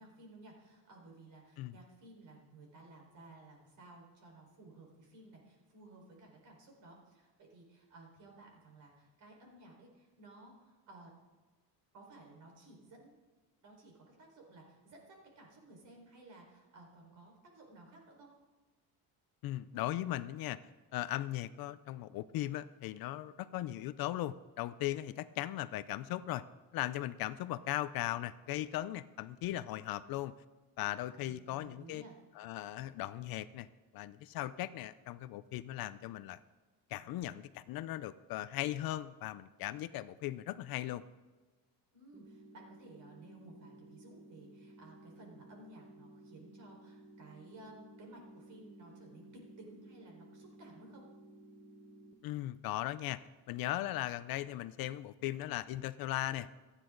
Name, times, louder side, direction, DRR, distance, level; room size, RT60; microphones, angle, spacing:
voice 1, 0.0-11.1 11.9-13.2 13.6-18.3 31.2-32.2 41.9-51.1, right 2 dB, 45° right, 0 dB, 4.7 m, -56 dB
voice 2, 19.4-20.6 20.9-26.4 26.7-30.3 30.8-32.0 32.4-33.7 33.9-36.4 36.9-41.0 52.2-53.2 53.5-56.5, left 14 dB, 60° left, 15 dB, 0.6 m, -38 dB
sound 1, 42.1-52.1, right 1 dB, 5° right, 1.1 m, -56 dB
28.0 x 10.0 x 3.9 m, 1.3 s
cardioid pair, 175°, 42 cm